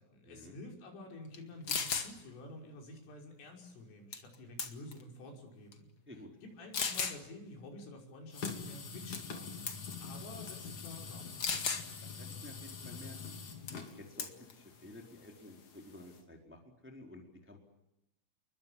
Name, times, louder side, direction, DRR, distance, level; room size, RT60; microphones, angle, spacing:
voice 1, 0.0-5.9 6.4-11.3, left 1 dB, 80° left, 2 dB, 8.4 m, -50 dB
sound 1, 1.3-1.4 1.7-2.1 4.1-4.3 4.6-5.0 5.7-5.8 6.7-7.2 9.1-9.4 9.7-9.9 11.4-11.8 13.7-13.9 14.2-14.5, left 5 dB, 65° left, 1.2 m, -34 dB
sound 2, 8.3-16.2, left 5 dB, 40° left, 3.9 m, -45 dB
voice 2, 12.0-13.3 13.7-17.6, left 1 dB, 5° right, 2 dB, 3.5 m, -52 dB
29.5 x 23.0 x 7.4 m, 0.87 s
omnidirectional pair, 5.7 m